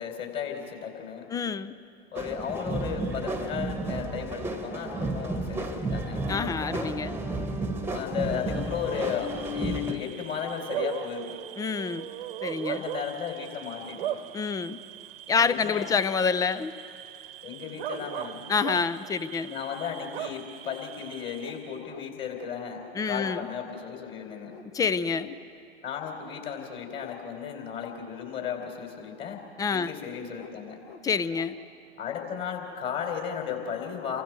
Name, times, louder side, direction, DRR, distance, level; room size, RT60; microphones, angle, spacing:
voice 1, 0.0-1.3 2.1-7.0 7.9-11.4 12.7-14.1 15.3-15.9 17.4-18.4 19.4-24.5 25.8-29.4 29.7-30.8 32.0-34.2, left 7 dB, 35° left, 3 dB, 4.0 m, -35 dB
voice 2, 1.3-1.7 6.3-7.2 11.6-12.1 12.4-12.8 14.3-14.8 15.3-16.7 18.5-19.5 23.0-23.4 24.7-25.3 29.6-29.9 31.0-31.5, left 5 dB, 10° left, 15 dB, 0.5 m, -27 dB
sound 1, 2.2-9.9, right 1 dB, 5° right, 1.3 m, -32 dB
Bark / Cricket, 8.5-21.8, right 11 dB, 60° right, 1.1 m, -39 dB
sound 2, 16.3-16.6 17.2-17.3 17.5-18.2 19.6-19.9 20.6-20.8 21.4-21.6 21.9-22.1 22.3-23.0 24.5-24.7 25.1-25.3 26.2-26.5 26.9-27.2 29.7-29.9 30.3-30.5 30.8-31.0 31.3-31.5, left 6 dB, 60° left, 1.8 m, -49 dB
29.5 x 23.5 x 4.7 m, 2.4 s
figure-of-eight pair, 95°, 33 cm